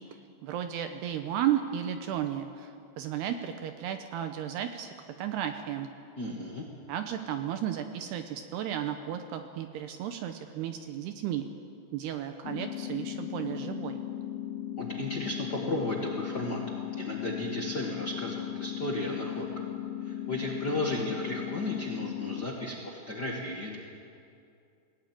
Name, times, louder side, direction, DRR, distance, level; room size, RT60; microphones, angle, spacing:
voice 1, 0.4-5.9 6.9-11.5 11.9-14.0, right 10 dB, 75° right, 7 dB, 2.6 m, -34 dB
voice 2, 6.2-6.6 14.8-16.6 16.9-19.4 20.0-23.8, left 1 dB, 65° left, -2 dB, 1.0 m, -34 dB
sound 1, 12.4-22.5, left 12 dB, 90° left, 3.3 m, -37 dB
20.5 x 17.5 x 9.3 m, 2.5 s
omnidirectional pair, 5.3 m